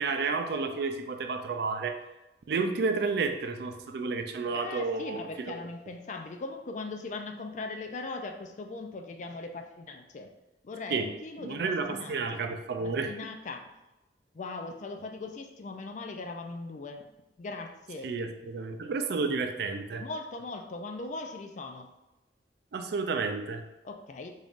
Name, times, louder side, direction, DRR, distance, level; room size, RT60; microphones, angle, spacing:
voice 1, 0.0-2.0 2.5-5.6 10.9-11.1 11.4-13.1 18.0-20.0 22.7-23.6, right 4 dB, 65° right, 7 dB, 0.4 m, -31 dB
voice 2, 4.4-10.3 10.6-12.5 13.1-13.7 14.3-17.0 17.4-18.1 20.0-21.9 23.8-24.3, left 3 dB, 45° left, 5 dB, 0.4 m, -39 dB
3.9 x 3.7 x 2.4 m, 0.99 s
head